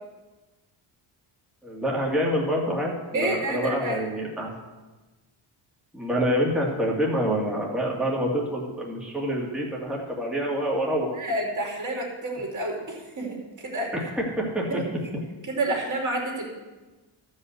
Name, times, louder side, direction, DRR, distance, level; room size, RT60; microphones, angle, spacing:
voice 1, 1.6-4.5 5.9-11.2 13.9-15.0, equal, ahead, -4 dB, 2.3 m, -27 dB
voice 2, 3.1-4.0 11.1-14.1 14.7-14.8 15.5-16.5, right 2 dB, 35° right, 0 dB, 3.2 m, -29 dB
12.5 x 5.6 x 7.9 m, 1.2 s
cardioid pair, 120°, 49 cm